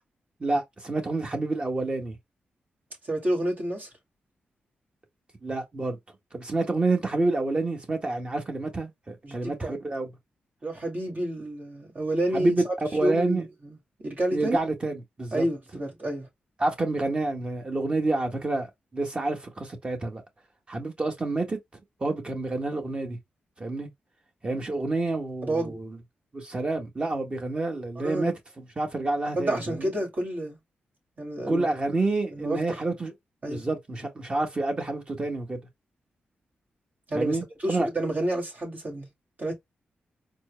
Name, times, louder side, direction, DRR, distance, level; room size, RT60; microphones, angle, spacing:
voice 1, 0.4-2.2 5.4-6.0 6.3-10.1 12.3-12.6 12.9-13.4 14.3-15.4 16.6-18.7 18.9-20.2 20.7-21.6 22.0-23.2 23.6-23.9 24.4-26.0 26.3-29.9 31.5-33.1 33.4-35.6 37.1-37.9, right 2 dB, 30° right, 1.5 m, -28 dB
voice 2, 3.0-3.9 9.2-9.8 10.6-12.7 13.0-13.8 14.0-14.6 15.3-16.3 25.4-25.8 28.0-28.3 29.4-30.6 31.2-31.7 32.3-32.8 33.4-33.6 37.1-39.1 39.4-39.6, right 1 dB, 50° right, 2.1 m, -29 dB
4.3 x 2.2 x 3.3 m
cardioid pair, 75°, 4 cm